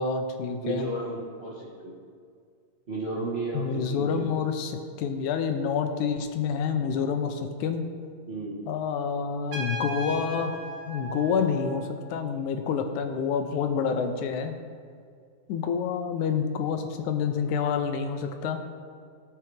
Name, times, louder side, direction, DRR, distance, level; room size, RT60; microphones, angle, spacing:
voice 1, 0.0-0.9 3.5-7.9 8.7-10.6 10.9-14.6 15.5-18.6, left 6 dB, 85° left, 6 dB, 2.1 m, -28 dB
voice 2, 0.6-1.9 2.9-4.2 8.3-8.6, right 2 dB, 35° right, -7 dB, 1.0 m, -33 dB
Trumpet, 9.5-12.2, right 1 dB, 60° right, 1.8 m, -37 dB
16.5 x 5.9 x 3.4 m, 2.2 s
omnidirectional pair, 3.4 m